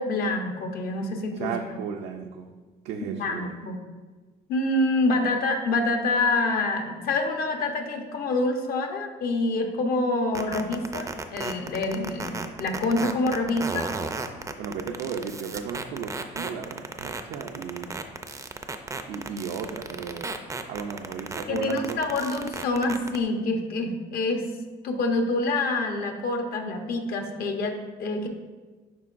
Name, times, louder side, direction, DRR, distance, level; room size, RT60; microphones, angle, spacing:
voice 1, 0.0-1.5 3.0-3.8 4.5-13.9 21.5-24.5 24.8-28.3, left 2 dB, 65° left, 4 dB, 1.0 m, -26 dB
voice 2, 1.4-2.5 2.8-3.5 14.6-18.0 19.1-20.3 20.7-22.2, right 6 dB, 85° right, 3 dB, 0.5 m, -35 dB
sound 1, 10.3-23.2, right 3 dB, 20° right, 0.4 m, -33 dB
10.5 x 3.8 x 2.5 m, 1.3 s
cardioid pair, 110°, 17 cm